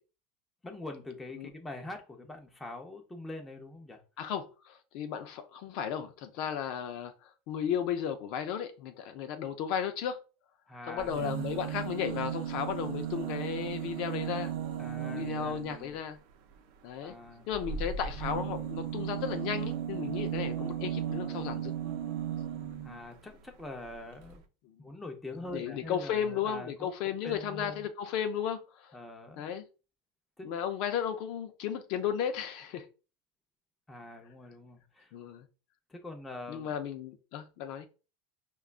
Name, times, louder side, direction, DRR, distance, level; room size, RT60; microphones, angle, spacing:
voice 1, 0.6-4.0 10.7-11.3 14.8-16.0 17.0-17.5 22.8-24.4 24.8-27.9 28.9-29.5 30.4-30.5 33.9-35.1 35.9-36.7, left 2 dB, 10° left, 0.6 m, -44 dB
voice 2, 4.2-7.1 7.5-10.2 10.9-14.5 15.1-16.2 16.8-17.2 17.5-21.7 25.5-28.9 29.4-29.7 30.4-32.9 35.1-35.5 36.5-37.9, left 8 dB, 55° left, 0.4 m, -34 dB
sound 1, 11.0-15.9 17.5-23.0 23.9-24.0 24.2-24.3, right 9 dB, 60° right, 0.6 m, -35 dB
4.8 x 2.2 x 2.4 m
supercardioid pair, 145°, 0 cm